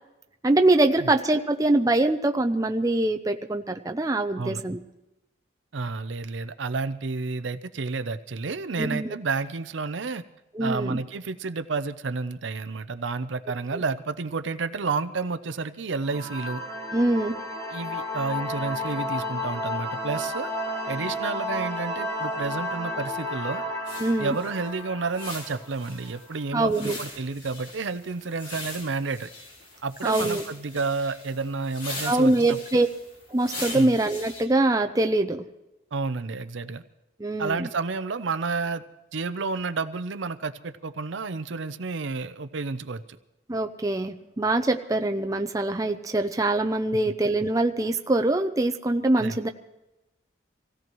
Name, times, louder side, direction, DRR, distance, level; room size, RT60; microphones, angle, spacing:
voice 1, 0.4-4.8 8.8-9.1 10.5-11.0 16.9-17.4 24.0-24.4 26.5-27.0 30.0-30.4 32.0-32.9 33.3-35.4 37.2-37.7 43.5-49.5, right 2 dB, 20° right, 5 dB, 0.6 m, -23 dB
voice 2, 5.7-10.2 10.6-16.6 17.7-20.5 20.9-23.6 24.2-29.3 29.8-32.8 33.7-34.0 35.9-36.8 37.4-38.8 39.1-43.0 49.2-49.4, right 4 dB, 75° right, 11 dB, 0.6 m, -30 dB
sound 1, 16.0-26.4, left 1 dB, 15° left, 1.2 m, -32 dB
sound 2, 23.9-34.5, left 2 dB, 80° left, 3.5 m, -40 dB
25.5 x 16.5 x 3.1 m, 0.96 s
head